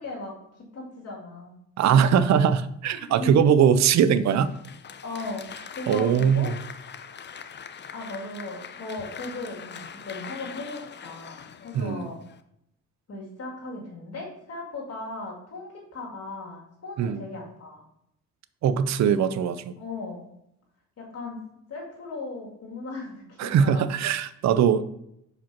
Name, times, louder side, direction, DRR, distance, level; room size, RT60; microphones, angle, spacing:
voice 1, 0.0-1.6 3.0-3.4 5.0-5.5 5.8-6.5 7.9-12.2 13.1-17.8 19.8-20.3 21.0-21.4 21.7-23.9, left 2 dB, 55° left, -2 dB, 2.0 m, -37 dB
voice 2, 1.8-4.5 5.9-6.6 11.7-12.1 17.0-17.2 18.6-19.7 23.4-24.8, right 8 dB, 65° right, 13 dB, 0.6 m, -21 dB
Applause, 4.3-12.4, left 7 dB, 35° left, 0.6 m, -42 dB
5.1 x 4.3 x 5.8 m, 0.77 s
cardioid pair, 90°, 30 cm